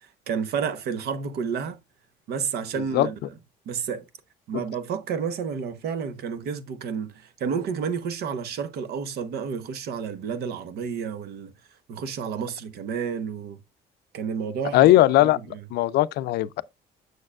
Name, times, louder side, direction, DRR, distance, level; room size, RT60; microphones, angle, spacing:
voice 1, 0.3-1.8 2.3-3.1 3.7-4.0 4.5-11.5 11.9-13.6 14.1-14.9 15.2-15.6, right 6 dB, 70° right, 0.9 m, -30 dB
voice 2, 14.7-15.4 15.7-16.6, left 15 dB, 75° left, 0.4 m, -18 dB
6.6 x 6.5 x 2.3 m
cardioid pair, 110°, 17 cm